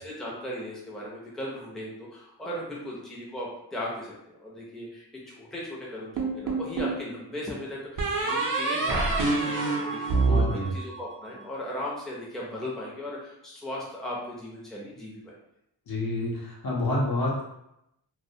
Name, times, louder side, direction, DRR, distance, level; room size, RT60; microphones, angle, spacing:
voice 1, 0.0-10.0 10.3-15.3, left 1 dB, ahead, -5 dB, 0.5 m, -37 dB
sound 1, 6.2-7.0 8.0-11.3, right 3 dB, 55° right, 0.5 m, -26 dB
voice 2, 10.3-10.7 15.9-17.4, left 1 dB, 65° left, -3 dB, 0.7 m, -28 dB
2.2 x 2.1 x 2.7 m, 0.82 s
wide cardioid pair, 100°, 39 cm